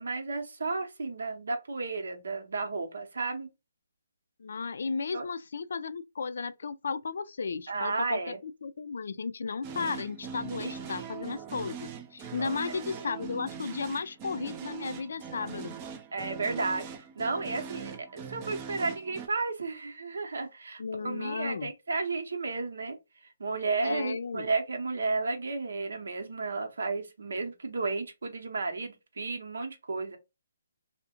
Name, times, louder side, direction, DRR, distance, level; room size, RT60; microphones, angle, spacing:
voice 1, 0.0-3.5 5.1-5.3 7.7-8.4 10.6-10.7 11.0-11.1 12.4-13.1 16.1-16.9 17.2-23.0 23.4-30.2, right 3 dB, 75° right, 0.8 m, -33 dB
voice 2, 4.4-15.7 20.8-21.7 23.8-24.5, left 5 dB, 65° left, 0.3 m, -34 dB
sound 1, 9.6-19.3, right 7 dB, 25° right, 0.4 m, -41 dB
2.4 x 2.1 x 2.8 m
hypercardioid pair, 155°, 0 cm